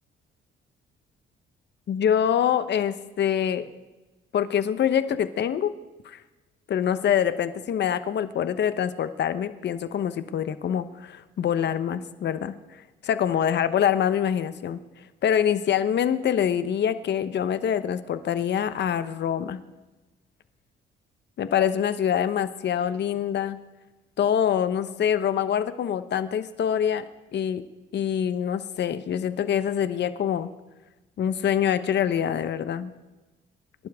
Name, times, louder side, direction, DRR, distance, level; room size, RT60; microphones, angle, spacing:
voice 1, 1.9-3.7 4.3-5.7 6.0-6.2 6.7-12.6 13.0-14.8 15.2-19.6 21.4-23.6 24.2-27.0 27.3-27.6 27.9-30.5 31.2-32.9, left 9 dB, 60° left, 12 dB, 1.0 m, -25 dB
27.0 x 11.5 x 3.6 m, 1.1 s
cardioid pair, 90°, 20 cm